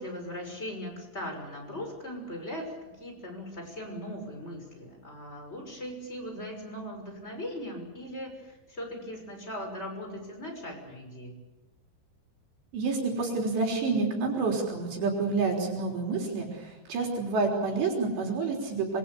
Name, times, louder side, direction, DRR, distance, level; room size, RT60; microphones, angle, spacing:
voice 1, 0.0-11.4, equal, 15° left, 4 dB, 5.9 m, -39 dB
voice 2, 12.7-19.0, right 4 dB, 65° right, 1 dB, 5.8 m, -28 dB
26.5 x 25.0 x 7.0 m, 1.1 s
omnidirectional pair, 5.4 m